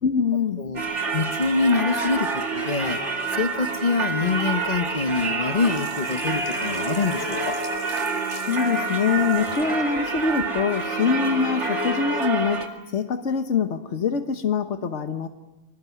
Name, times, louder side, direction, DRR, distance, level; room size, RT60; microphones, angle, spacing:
voice 1, 0.0-0.6 8.4-12.6 12.9-15.3, left 6 dB, 85° left, 7 dB, 1.5 m, -24 dB
Singing / Church bell, 0.8-12.7, right 3 dB, 85° right, 2.7 m, -27 dB
voice 2, 1.1-3.0 3.3-7.5, left 4 dB, 40° left, 10 dB, 1.1 m, -25 dB
Sink (filling or washing), 5.5-9.7 10.1-10.2, right 1 dB, 65° right, 5.7 m, -44 dB
25.0 x 20.0 x 9.4 m, 1.1 s
omnidirectional pair, 1.2 m